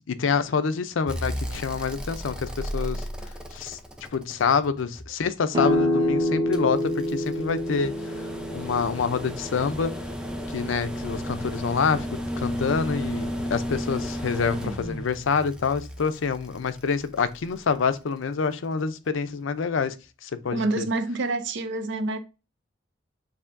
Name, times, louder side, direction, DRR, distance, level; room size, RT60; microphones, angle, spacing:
voice 1, 0.1-3.0 3.5-3.8 4.1-8.3 8.5-9.9 10.5-12.1 12.4-19.9 20.2-20.9, left 5 dB, 70° left, 0.5 m, -27 dB
sound 1, 1.1-5.2 6.5-17.7 19.3-19.4, equal, 5° right, 0.5 m, -34 dB
sound 2, 5.5-11.1, left 1 dB, 20° right, 1.0 m, -28 dB
voice 2, 20.5-22.2, right 2 dB, 65° right, 0.6 m, -28 dB
6.9 x 2.7 x 2.5 m
head